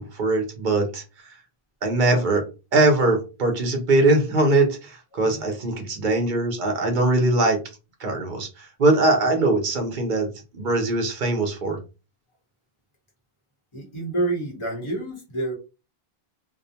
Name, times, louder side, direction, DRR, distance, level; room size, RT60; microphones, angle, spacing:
voice 1, 0.0-1.4 1.8-2.4 2.7-7.6 8.0-10.3 10.5-11.8, right 2 dB, 55° right, 4 dB, 0.8 m, -21 dB
voice 2, 5.1-5.5 13.7-15.5, right 2 dB, 30° left, -1 dB, 0.9 m, -28 dB
2.5 x 2.1 x 2.7 m, 0.30 s
omnidirectional pair, 1.0 m